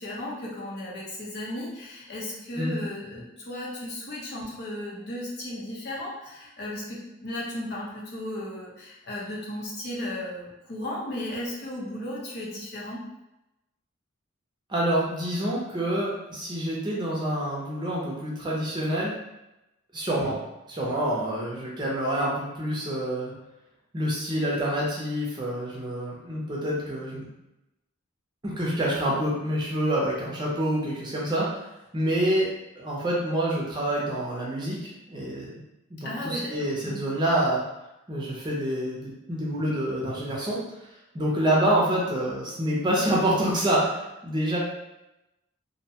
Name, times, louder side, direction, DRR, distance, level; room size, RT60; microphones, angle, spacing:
voice 1, 0.0-13.0 36.0-36.5 36.8-37.0, left 1 dB, 55° left, -5 dB, 0.7 m, -35 dB
voice 2, 14.7-19.1 19.9-20.4 20.7-23.3 23.9-27.3 28.4-31.6 31.9-32.5 32.8-35.5 35.9-37.6 38.1-40.6 41.1-44.6, right 1 dB, 20° right, -5 dB, 0.5 m, -27 dB
2.6 x 2.1 x 2.7 m, 0.93 s
head